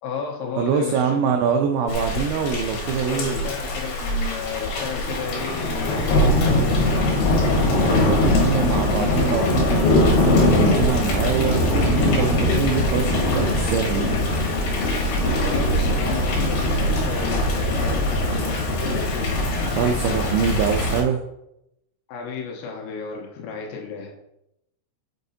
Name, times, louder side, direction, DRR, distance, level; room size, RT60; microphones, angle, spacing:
voice 1, 0.0-1.3 3.1-9.8 15.4-19.5 22.1-24.1, left 6 dB, 80° left, 0 dB, 3.2 m, -33 dB
voice 2, 0.6-3.5 7.7-14.2 19.8-21.2, right 7 dB, 90° right, 4 dB, 2.5 m, -24 dB
Thunder / Rain, 1.9-21.0, left 1 dB, 65° left, 3.0 m, -21 dB
6.6 x 6.4 x 2.7 m, 0.84 s
omnidirectional pair, 5.7 m